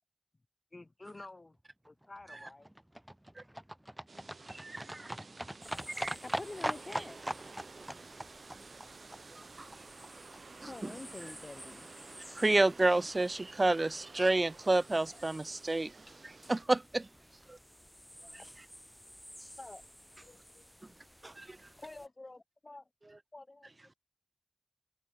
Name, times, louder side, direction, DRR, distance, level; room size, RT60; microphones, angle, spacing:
voice 1, 0.7-1.6 1.9-2.7 6.2-7.2 10.7-11.9 19.6-19.8 21.8-22.8 23.3-23.7, left 2 dB, 45° left, 2.3 m, -47 dB
Livestock farm animals working animals, 1.9-10.1 10.3-10.4 10.7-10.8 11.0-11.1 11.3-11.4 11.6-11.7 11.9-12.0 12.2-12.3 12.5-12.6, right 1 dB, 15° right, 1.7 m, -41 dB
sound 1, 4.1-16.6, right 4 dB, 80° right, 1.6 m, -53 dB
voice 2, 4.5-5.1 6.0-6.2 9.3-9.7 10.6-10.9 12.4-15.9 16.2-17.1 17.5-17.6 18.3-18.4 21.2-21.6, right 2 dB, 45° right, 0.9 m, -30 dB
sound 2, 5.6-22.1, equal, 5° left, 5.1 m, -56 dB
voice 3, 14.9-15.2 17.6-17.7 20.2-21.3 22.0-22.1, left 3 dB, 70° left, 3.9 m, -65 dB
wide cardioid pair, 50°, 0 cm